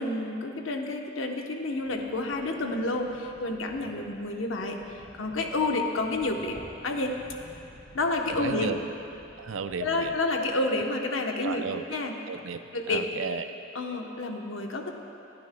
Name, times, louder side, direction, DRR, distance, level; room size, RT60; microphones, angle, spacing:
voice 1, 0.0-6.6 6.8-7.2 7.9-8.7 9.8-11.6 11.9-12.1 12.7-13.0 13.7-14.9, left 2 dB, 85° left, 2 dB, 1.0 m, -29 dB
sound 1, 1.6-10.9, equal, 65° left, 2.4 m, -52 dB
voice 2, 8.3-8.8 9.4-10.2 11.4-11.8 12.3-13.5, right 5 dB, 85° right, 10 dB, 0.5 m, -34 dB
25.0 x 9.6 x 2.3 m, 2.8 s
head